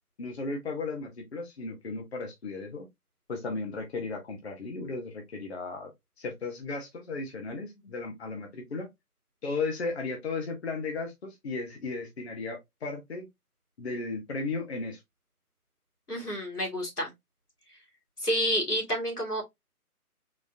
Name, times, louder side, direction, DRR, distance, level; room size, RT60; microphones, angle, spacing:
voice 1, 0.2-2.9 3.3-5.9 6.2-8.9 9.4-13.3 13.8-15.0, left 3 dB, 45° left, 1.1 m, -35 dB
voice 2, 16.1-17.1 18.2-19.4, equal, 90° left, 2.3 m, -29 dB
4.2 x 2.9 x 2.6 m
figure-of-eight pair, 145°, 45 cm